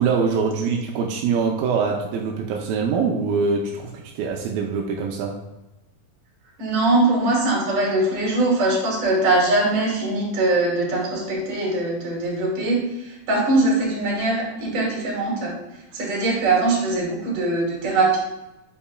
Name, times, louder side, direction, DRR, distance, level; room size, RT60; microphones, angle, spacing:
voice 1, 0.0-5.4, right 5 dB, 90° right, 0 dB, 2.5 m, -23 dB
voice 2, 6.6-15.6 15.9-18.2, right 2 dB, 60° right, -4 dB, 3.8 m, -21 dB
8.5 x 6.9 x 2.3 m, 1.0 s
omnidirectional pair, 4.1 m